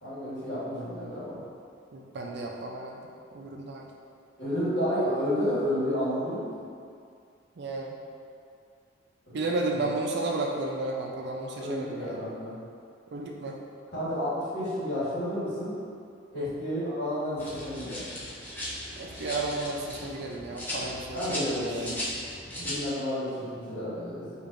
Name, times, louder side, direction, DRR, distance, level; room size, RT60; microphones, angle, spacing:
voice 1, 0.0-1.4 4.4-6.6 9.3-9.4 9.7-9.8 11.6-12.5 13.9-15.7 16.3-18.0 21.1-22.0 22.5-24.5, equal, 60° left, -10 dB, 1.4 m, -31 dB
voice 2, 1.9-3.9 7.6-8.0 9.3-12.3 13.1-13.6 16.3-16.5 19.0-21.9, right 2 dB, 60° right, 0 dB, 0.4 m, -33 dB
sound 1, 17.4-22.9, left 1 dB, 10° left, 0.5 m, -37 dB
4.8 x 2.5 x 2.5 m, 2.3 s
head